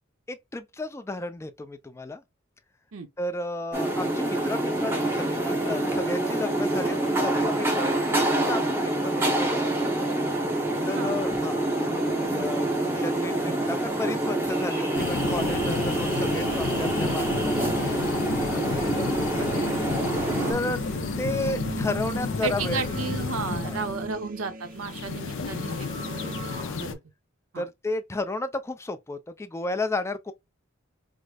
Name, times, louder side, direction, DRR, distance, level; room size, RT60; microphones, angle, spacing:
voice 1, 0.3-2.2 3.2-9.9 10.9-11.6 12.3-12.7 12.9-19.7 20.5-20.8 21.2-23.0 23.6-23.9 25.0-25.7 26.5-26.8 27.6-30.3, left 2 dB, 15° left, 0.4 m, -33 dB
sound 1, 3.7-20.5, right 1 dB, 10° right, 0.8 m, -26 dB
sound 2, 14.9-24.1 24.7-26.9, left 4 dB, 60° left, 0.6 m, -32 dB
sound 3, 16.6-26.6, right 2 dB, 40° right, 0.6 m, -38 dB
voice 2, 20.4-20.7 22.4-25.9 26.2-27.0 27.5-27.6, right 4 dB, 75° right, 0.7 m, -34 dB
4.9 x 2.0 x 2.3 m
head